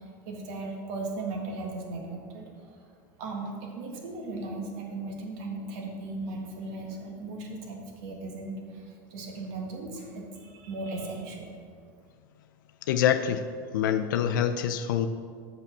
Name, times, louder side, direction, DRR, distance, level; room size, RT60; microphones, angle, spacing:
voice 1, 0.0-11.5, right 2 dB, 65° right, 1 dB, 1.7 m, -37 dB
voice 2, 12.9-13.5 13.7-15.1, left 9 dB, 85° left, 8 dB, 0.4 m, -25 dB
6.8 x 5.7 x 6.0 m, 2.2 s
supercardioid pair, 105°, 10 cm